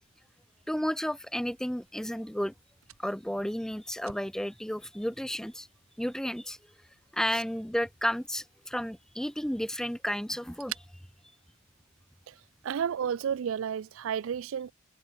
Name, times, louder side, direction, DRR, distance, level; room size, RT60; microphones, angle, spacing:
voice 1, 0.7-2.5 3.0-5.7 6.0-6.6 7.1-10.8, equal, 5° left, 0.8 m, -32 dB
Fire, 0.7-12.2, right 11 dB, 85° right, 4.8 m, -52 dB
voice 2, 12.6-14.7, right 8 dB, 65° right, 0.4 m, -32 dB
head